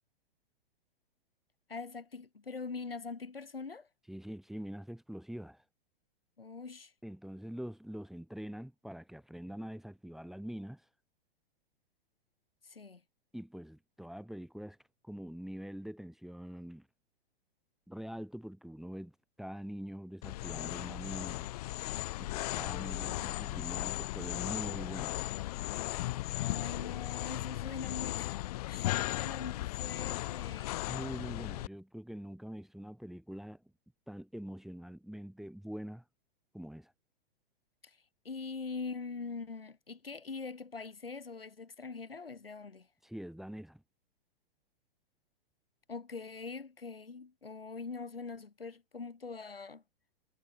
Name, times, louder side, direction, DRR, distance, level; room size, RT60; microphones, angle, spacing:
voice 1, 1.7-3.9 6.4-6.9 12.6-13.0 26.3-28.4 28.7-30.8 37.8-38.0 38.2-42.9 45.9-49.8, left 4 dB, 80° left, 2.0 m, -43 dB
voice 2, 4.1-5.6 7.0-10.8 13.3-14.8 15.0-16.9 17.9-21.5 22.2-25.2 30.9-33.6 34.1-36.0 36.5-36.9 43.0-43.8, equal, ahead, 1.6 m, -44 dB
sound 1, 20.2-31.7, left 17 dB, 40° left, 1.1 m, -36 dB
figure-of-eight pair, 105°, 29 cm